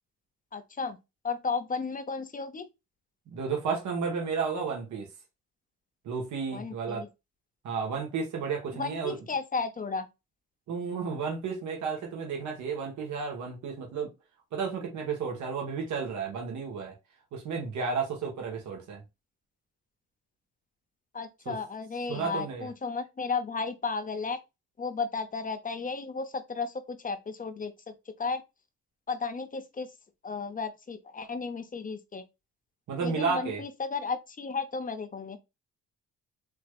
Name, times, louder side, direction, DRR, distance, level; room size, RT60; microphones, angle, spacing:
voice 1, 0.5-1.0 1.2-2.7 6.5-7.1 8.8-10.1 21.1-24.4 24.8-27.7 28.2-28.4 29.1-29.9 30.2-32.2 33.0-35.4, left 4 dB, 25° left, 0.8 m, -34 dB
voice 2, 3.3-5.1 6.0-7.0 7.6-9.3 10.7-14.1 14.5-16.9 17.3-19.0 21.4-21.6 22.1-22.7 32.9-33.6, right 5 dB, 70° right, 1.5 m, -32 dB
4.4 x 3.2 x 2.4 m
cardioid pair, 90°, 30 cm